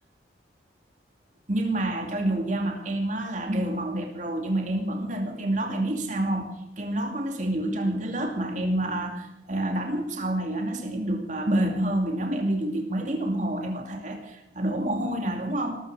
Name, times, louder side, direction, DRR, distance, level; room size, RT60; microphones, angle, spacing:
voice 1, 1.5-15.8, right 1 dB, 40° right, 3 dB, 2.5 m, -28 dB
19.0 x 15.0 x 4.9 m, 0.86 s
head